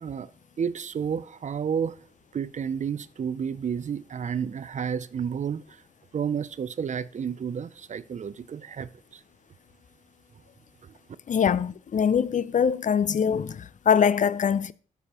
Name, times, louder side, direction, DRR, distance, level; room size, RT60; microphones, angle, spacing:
voice 1, 0.0-0.3 0.6-2.0 2.3-5.6 6.1-9.2, right 7 dB, 55° right, 0.5 m, -31 dB
voice 2, 11.3-14.7, left 7 dB, 55° left, 0.5 m, -23 dB
12.5 x 6.9 x 3.0 m
cardioid pair, 65°, 15 cm